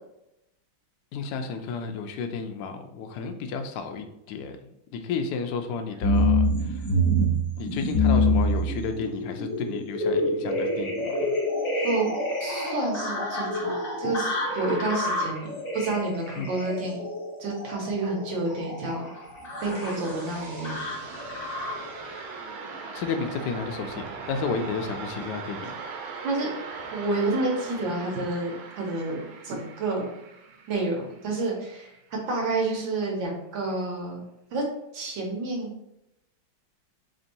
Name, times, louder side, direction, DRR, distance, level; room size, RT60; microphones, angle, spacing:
voice 1, 1.1-4.6 4.9-6.8 7.6-11.2 16.4-16.5 22.0-22.3 22.9-25.7, left 5 dB, 75° left, 5 dB, 0.9 m, -32 dB
sound 1, 6.0-21.9 22.6-23.2 23.7-23.8, left 1 dB, 50° left, 1.2 m, -27 dB
voice 2, 12.4-13.7 14.0-15.5 15.7-17.0 17.4-19.1 19.6-20.8 26.2-26.5 26.9-30.1 30.7-31.9 32.3-34.2 34.5-34.6 34.9-35.8, right 2 dB, 70° right, -1 dB, 1.5 m, -29 dB
sound 2, 19.1-31.9, right 4 dB, 85° right, 1.5 m, -40 dB
4.0 x 3.5 x 2.6 m, 0.85 s
omnidirectional pair, 2.3 m